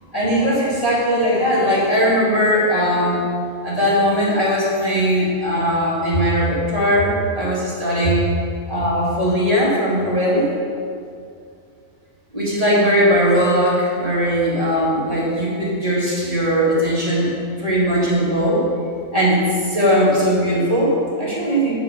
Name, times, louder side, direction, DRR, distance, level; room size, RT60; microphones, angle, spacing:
voice 1, 0.1-3.2 3.6-8.2 8.7-10.5 12.3-17.3 17.6-18.6 19.1-21.7, equal, 25° right, -7 dB, 2.1 m, -19 dB
8.0 x 5.7 x 5.5 m, 2.4 s
omnidirectional pair, 1.5 m